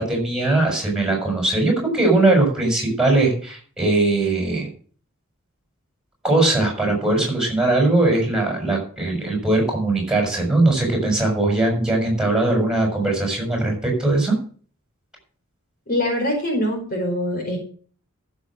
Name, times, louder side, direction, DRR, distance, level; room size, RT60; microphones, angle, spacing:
voice 1, 0.0-4.7 6.2-14.4, right 2 dB, 5° right, 1 dB, 6.6 m, -20 dB
voice 2, 15.9-17.6, left 1 dB, 45° left, 2 dB, 4.8 m, -23 dB
14.5 x 7.5 x 6.3 m, 0.44 s
head